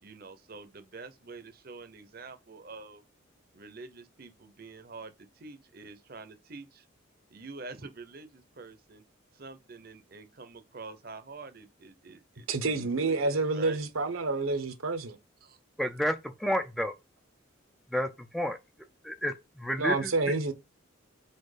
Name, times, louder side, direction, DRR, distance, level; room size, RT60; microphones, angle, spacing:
voice 1, 0.0-3.0 3.5-6.9 7.3-9.0 9.3-13.8 15.4-15.6, right 3 dB, 45° right, 0.8 m, -46 dB
voice 2, 12.5-15.2 19.8-20.5, right 3 dB, 80° right, 1.0 m, -28 dB
voice 3, 15.8-16.9 17.9-18.6 19.0-20.3, equal, ahead, 0.4 m, -31 dB
4.5 x 4.3 x 4.9 m
head